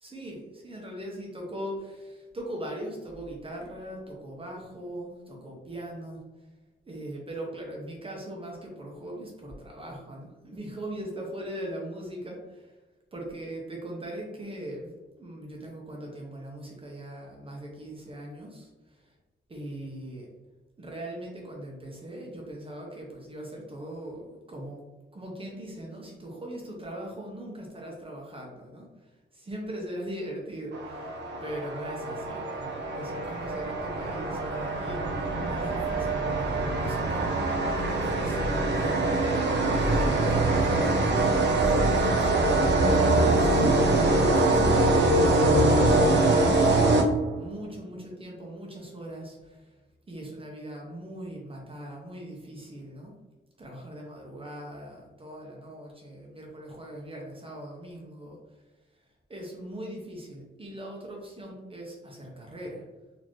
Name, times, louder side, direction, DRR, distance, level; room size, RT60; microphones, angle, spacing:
voice 1, 0.0-6.2 6.9-12.8 13.1-19.1 19.5-20.3 20.8-24.8 25.1-28.9 29.3-37.3 37.7-39.3 39.7-43.6 44.0-45.1 45.5-47.1 47.3-49.8 50.1-53.2 53.6-58.6 58.9-59.0 59.3-62.8, right 1 dB, 30° right, -2 dB, 0.8 m, -40 dB
sound 1, 30.7-47.5, right 2 dB, 65° right, 0.6 m, -24 dB
4.2 x 2.8 x 3.0 m, 1.2 s
wide cardioid pair, 135°, 19 cm